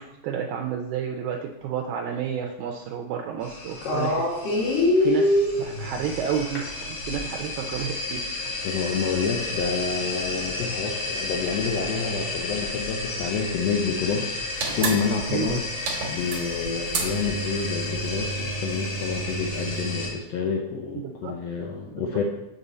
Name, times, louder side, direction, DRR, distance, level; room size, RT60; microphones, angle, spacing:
voice 1, 0.0-4.3 5.0-8.2 15.3-15.6 21.0-21.3 22.0-22.1, right 8 dB, 80° right, 2 dB, 1.9 m, -30 dB
sound 1, 3.4-20.1, left 2 dB, 55° left, 2.5 m, -29 dB
voice 2, 8.6-15.6 16.1-22.2, left 5 dB, 75° left, 1 dB, 1.5 m, -28 dB
sound 2, 14.5-20.1, right 4 dB, 65° right, 2.1 m, -32 dB
6.7 x 5.5 x 4.0 m, 0.92 s
omnidirectional pair, 3.5 m